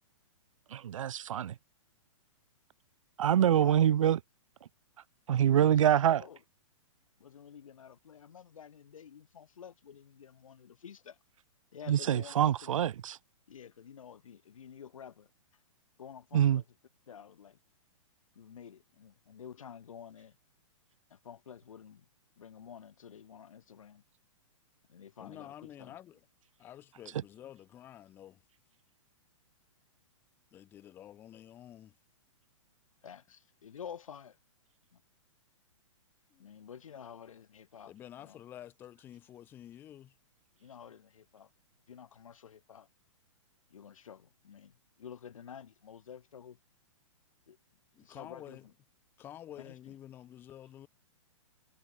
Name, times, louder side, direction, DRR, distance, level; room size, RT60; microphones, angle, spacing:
voice 1, 0.7-1.5 3.2-4.2 5.3-6.2 11.9-13.2 16.3-16.6, right 10 dB, 80° right, 0.5 m, -25 dB
voice 2, 3.4-3.9 5.5-6.4 7.2-11.2 11.7-12.8 13.5-15.3 16.0-16.7 17.1-17.6 18.3-20.4 21.1-22.1 22.4-24.0 24.9-26.0 33.0-34.4 34.9-35.0 36.4-38.4 40.6-41.5 41.9-42.9 43.7-46.6 47.5-47.6 48.0-48.7 49.6-50.0, left 8 dB, 85° left, 4.0 m, -50 dB
voice 3, 25.2-26.2 26.6-28.4 30.5-31.9 36.3-36.5 37.8-40.1 47.9-48.6 49.2-50.9, left 11 dB, 10° left, 1.3 m, -50 dB
hypercardioid pair, 175°, 17 cm